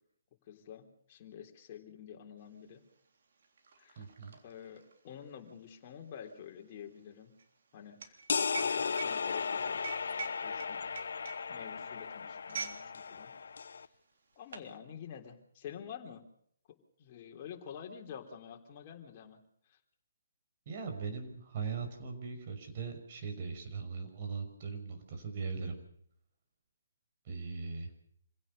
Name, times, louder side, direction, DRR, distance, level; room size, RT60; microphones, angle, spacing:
voice 1, 0.5-2.8 3.8-4.0 4.4-7.3 7.7-8.2 8.5-10.8 11.5-13.3 14.4-16.2 17.0-19.4 19.7-19.8, left 8 dB, 35° left, 2 dB, 3.5 m, -48 dB
sound 1, 2.5-2.6 2.9-12.9 13.2-13.4 14.1-14.7, right 5 dB, 60° right, 3.6 m, -45 dB
voice 2, 4.0-4.4 20.7-25.8 27.2-27.9, right 5 dB, 40° right, 5 dB, 5.7 m, -40 dB
sound 2, 8.3-13.9, left 5 dB, 65° left, 0.8 m, -35 dB
26.5 x 16.5 x 6.8 m, 0.67 s
figure-of-eight pair, 140°, 0 cm